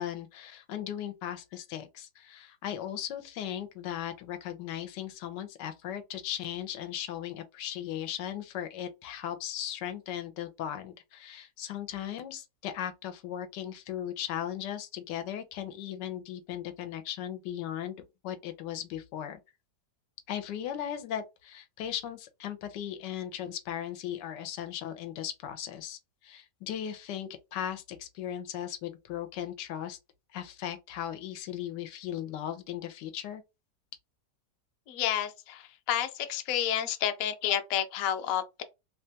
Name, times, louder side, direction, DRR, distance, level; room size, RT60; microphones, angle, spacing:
voice 1, 0.0-18.0 18.2-19.4 20.3-30.0 30.3-33.4, left 10 dB, 90° left, 1.2 m, -37 dB
voice 2, 34.9-38.6, left 10 dB, 70° left, 0.8 m, -30 dB
3.2 x 2.2 x 2.7 m
omnidirectional pair, 1.8 m